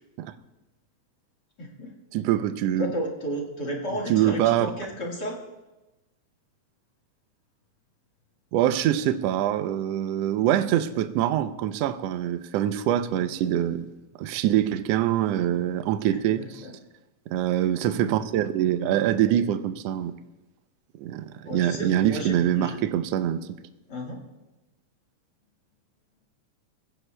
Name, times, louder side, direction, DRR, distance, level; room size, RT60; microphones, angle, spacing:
voice 1, 1.6-1.9 2.8-5.4 16.4-16.7 21.4-22.8 23.9-24.2, equal, 40° left, 1.9 m, -33 dB
voice 2, 2.1-2.9 4.1-4.7 8.5-13.9 14.2-16.6 17.3-20.1 21.0-23.6, right 11 dB, 75° right, 1.5 m, -24 dB
21.0 x 16.0 x 2.2 m
omnidirectional pair, 3.3 m